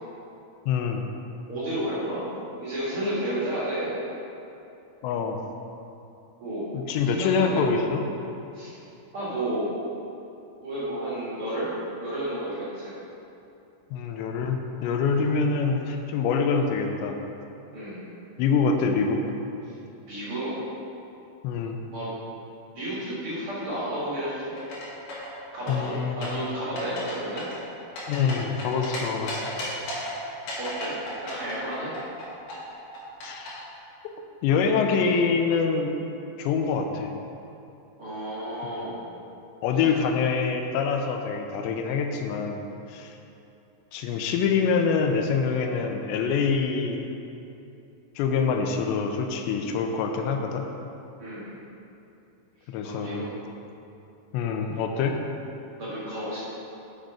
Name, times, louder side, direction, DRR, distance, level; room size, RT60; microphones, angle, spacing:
voice 1, 0.7-1.1 5.0-5.4 6.7-8.0 13.9-17.2 18.4-19.2 21.4-21.8 25.7-26.3 28.1-29.5 33.2-33.7 34.0-34.1 34.4-35.9 36.4-37.1 38.6-38.7 39.6-42.6 42.9-43.1 43.9-47.1 48.2-50.7 52.7-53.3 54.3-55.2, left 5 dB, 85° left, 4 dB, 2.8 m, -25 dB
voice 2, 1.5-4.0 6.4-6.7 7.0-7.6 8.5-8.8 9.1-9.7 10.6-11.7 12.0-12.9 15.1-15.3 17.7-18.0 19.6-19.7 20.1-20.6 21.9-22.1 22.7-24.5 25.5-27.4 30.6-30.9 31.2-31.9 38.0-39.0 51.2-51.5 52.8-53.3 55.8-56.4, right 1 dB, 55° right, -9 dB, 1.6 m, -32 dB
sound 1, 24.6-25.3 25.7-26.4 26.8-27.1 27.4-29.0 29.3-30.1 30.5-32.2 32.5-33.5, left 1 dB, 65° left, 3.4 m, -34 dB
6.6 x 6.4 x 5.0 m, 2.8 s
omnidirectional pair, 5.0 m